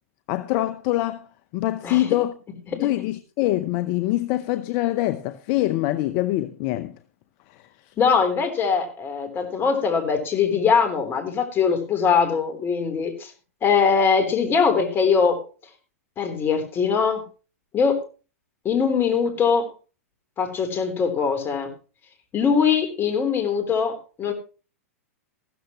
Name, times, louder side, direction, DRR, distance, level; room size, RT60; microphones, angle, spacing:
voice 1, 0.3-1.3 1.5-2.3 2.7-7.0 7.5-7.9, left 16 dB, 45° left, 0.8 m, -24 dB
voice 2, 8.0-13.3 13.6-15.4 16.2-17.2 17.7-18.0 18.6-19.7 20.4-21.7 22.3-24.3, left 6 dB, 25° left, 3.6 m, -22 dB
15.0 x 13.0 x 3.1 m
hypercardioid pair, 110°, 8 cm